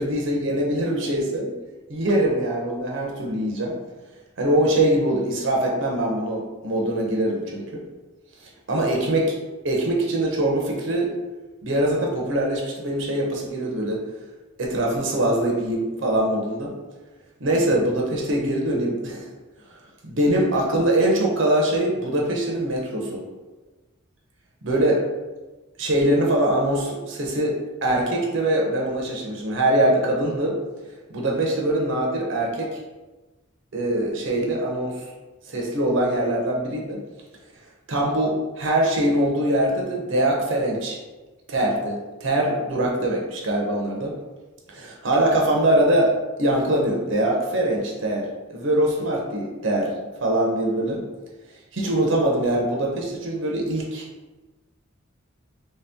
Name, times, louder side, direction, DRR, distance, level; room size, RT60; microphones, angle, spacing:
voice 1, 0.0-1.5 1.9-3.8 4.4-7.8 8.7-9.3 9.6-11.1 11.6-14.0 14.6-16.7 17.4-19.3 20.1-23.2 24.6-25.0 25.8-30.6 31.1-32.8 33.7-35.0 35.5-37.0 37.9-41.0 41.5-44.1 44.7-46.1 46.4-49.9 50.2-51.0 51.7-54.1, right 1 dB, 65° right, -1 dB, 0.7 m, -23 dB
3.2 x 2.8 x 3.4 m, 1.2 s
head